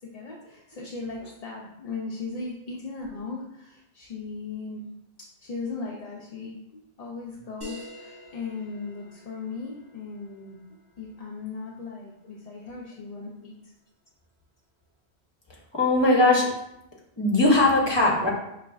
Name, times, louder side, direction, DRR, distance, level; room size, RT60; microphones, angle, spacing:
voice 1, 0.0-4.8 5.4-13.7, left 4 dB, 55° left, -2 dB, 0.4 m, -37 dB
sound 1, 7.6-12.7, left 2 dB, 20° right, 1.3 m, -48 dB
voice 2, 15.7-16.5 17.2-18.3, left 2 dB, 25° left, -2 dB, 0.8 m, -20 dB
4.9 x 3.2 x 2.3 m, 0.83 s
omnidirectional pair, 1.1 m